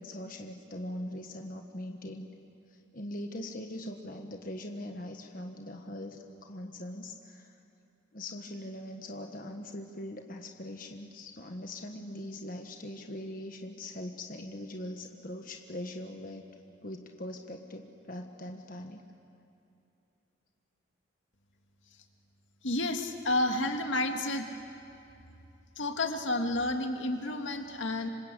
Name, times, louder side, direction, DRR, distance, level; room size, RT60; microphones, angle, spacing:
voice 1, 0.0-2.3 2.7-7.5 8.1-16.4 16.8-19.0, left 1 dB, 45° left, 3 dB, 1.4 m, -41 dB
voice 2, 22.6-24.5 25.8-28.1, left 2 dB, 75° left, 5 dB, 2.0 m, -30 dB
26.5 x 26.5 x 8.4 m, 2.7 s
head